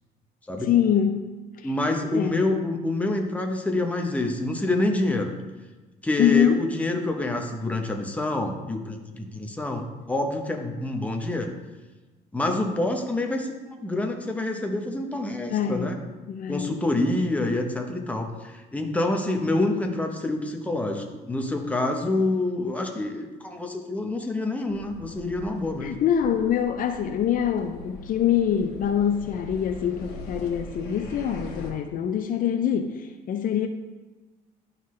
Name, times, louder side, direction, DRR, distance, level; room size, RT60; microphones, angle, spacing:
voice 1, 0.6-1.3 1.6-1.7 2.1-2.4 6.2-6.7 15.5-16.0 16.3-16.7 25.8-33.7, left 9 dB, 55° left, 7 dB, 0.5 m, -24 dB
voice 2, 1.6-5.3 6.0-11.5 12.3-16.0 16.5-26.0, left 2 dB, 10° left, 3 dB, 0.9 m, -27 dB
sound 1, 24.7-31.7, left 1 dB, 85° left, 1.6 m, -42 dB
11.0 x 4.0 x 3.2 m, 1.2 s
cardioid pair, 110°, 17 cm